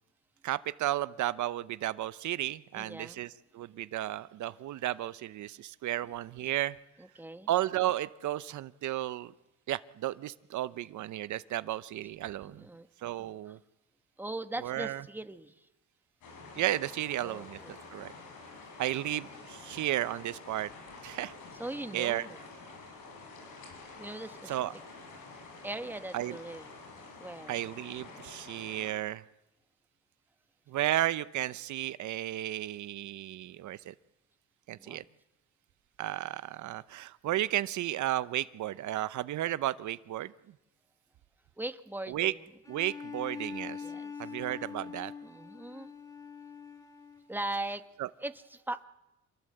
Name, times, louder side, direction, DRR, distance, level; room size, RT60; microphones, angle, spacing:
voice 1, 0.4-6.8 7.5-9.3 9.7-12.6 13.0-13.6 14.6-15.0 16.6-17.6 17.9-18.1 18.8-20.7 21.0-21.3 21.9-22.3 24.5-24.7 26.1-26.4 27.5-29.2 30.7-33.9 34.7-35.0 36.0-40.3 42.1-42.3 42.7-43.8 44.2-45.1 48.0-48.1, right 13 dB, 75° right, 15 dB, 0.8 m, -33 dB
voice 2, 2.7-3.2 7.0-7.5 12.4-12.9 13.5-13.6 14.2-15.5 17.2-17.8 21.6-22.4 24.0-24.6 25.6-26.7 27.2-27.6 34.8-35.1 41.6-42.4 43.8-44.1 44.7-44.8 45.2-45.9 47.3-47.8 48.2-48.9, right 2 dB, 5° right, 9 dB, 1.4 m, -40 dB
sound 1, 16.2-28.9, left 3 dB, 90° left, 6.8 m, -49 dB
Bowed string instrument, 42.6-47.4, left 6 dB, 10° left, 2.7 m, -43 dB
26.5 x 20.0 x 7.8 m, 0.96 s
cardioid pair, 90°, 30 cm